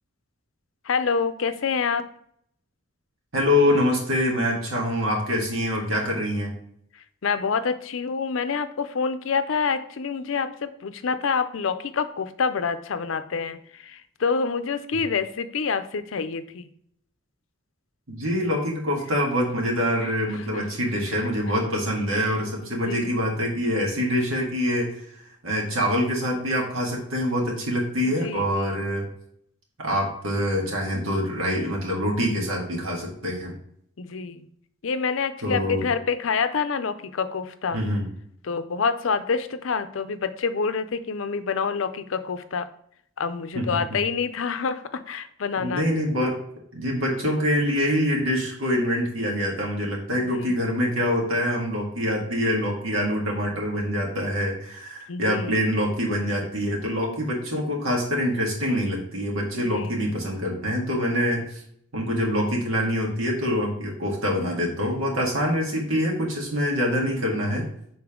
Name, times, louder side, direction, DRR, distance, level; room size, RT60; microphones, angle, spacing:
voice 1, 0.8-2.0 7.2-16.7 20.0-20.6 22.6-23.1 28.0-28.8 34.0-34.5 34.8-37.8 38.4-42.7 43.2-45.8 50.1-50.5 55.1-55.6 59.5-59.9, left 5 dB, 75° left, 11 dB, 0.5 m, -27 dB
voice 2, 3.3-6.5 18.1-25.0 25.4-29.1 29.8-33.5 35.4-35.8 37.7-38.1 43.5-44.0 45.6-46.4 46.7-61.4 61.9-67.7, equal, 80° right, -1 dB, 1.8 m, -25 dB
6.9 x 3.9 x 3.6 m, 0.68 s
head